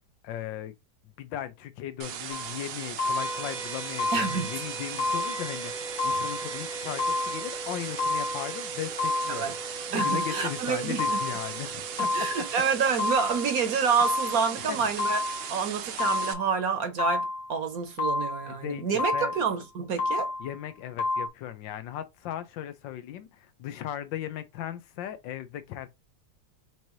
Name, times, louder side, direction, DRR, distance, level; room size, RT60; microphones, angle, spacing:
voice 1, 0.2-0.7 1.2-9.6 9.9-12.3 14.6-14.9 18.5-19.3 20.4-25.9, left 11 dB, 80° left, 1.4 m, -37 dB
sound 1, 2.0-16.3, right 9 dB, 75° right, 1.3 m, -38 dB
sound 2, 2.3-2.6 3.0-3.6 4.0-4.6 5.0-5.6 6.0-6.6 7.0-7.6 8.0-8.6 9.0-9.6 10.0-10.6 11.0-11.6 12.0-12.6 13.0-13.6 14.0-14.6 15.0-15.6 16.0-16.6 17.0-17.6 18.0-18.6 19.0-19.6 20.0-20.6 21.0-21.3, left 3 dB, 55° left, 1.6 m, -30 dB
sound 3, 3.2-14.3, right 1 dB, 40° right, 0.5 m, -41 dB
voice 2, 4.1-4.5 9.3-9.5 9.9-11.2 12.1-15.2 15.5-20.3, right 6 dB, 60° right, 1.2 m, -28 dB
6.3 x 2.7 x 3.0 m
omnidirectional pair, 2.0 m